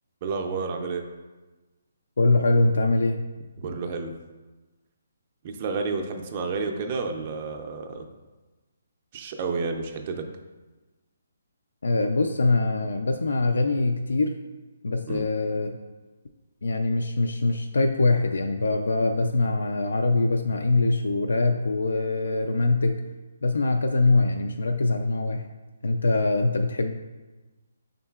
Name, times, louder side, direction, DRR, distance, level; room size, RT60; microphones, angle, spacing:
voice 1, 0.2-1.0 3.6-4.1 5.4-8.1 9.1-10.2 15.1-15.3, right 4 dB, 30° right, 4 dB, 0.4 m, -30 dB
voice 2, 2.2-3.2 11.8-14.4 14.8-15.8 16.6-23.0 23.4-25.5 25.8-26.9, left 2 dB, 90° left, 5 dB, 0.3 m, -23 dB
5.4 x 3.8 x 2.3 m, 1.2 s
hypercardioid pair, 170°, 0 cm